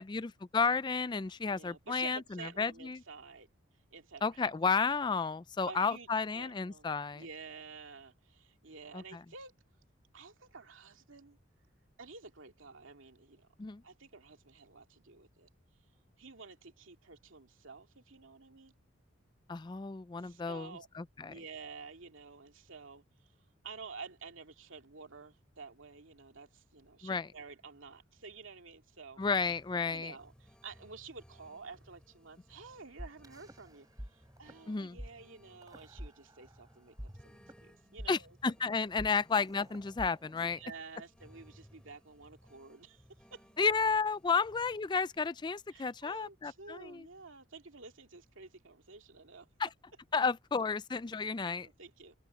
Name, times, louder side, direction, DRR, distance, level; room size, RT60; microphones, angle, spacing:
voice 1, 0.0-3.0 4.2-7.2 8.9-9.2 13.6-13.8 19.5-20.7 21.0-21.4 27.0-27.3 29.2-30.1 34.7-35.0 38.1-40.6 43.6-47.1 49.6-49.7 50.1-51.7, left 5 dB, 20° left, 0.3 m, -32 dB
voice 2, 1.4-3.5 3.9-4.5 5.7-6.1 6.3-6.9 7.1-9.5 10.1-11.4 12.0-13.5 13.8-15.5 16.2-18.7 20.2-20.9 21.2-23.0 23.6-29.2 29.9-36.9 37.2-38.4 38.9-39.0 40.3-43.0 43.3-43.5 45.7-49.5 51.1-52.1, right 4 dB, 80° right, 2.3 m, -51 dB
sound 1, 29.2-45.2, equal, 5° left, 5.5 m, -63 dB
sound 2, 33.0-34.1 34.4-34.6 35.0-35.1 35.6-36.6 37.0-41.0, equal, 20° right, 3.7 m, -47 dB
head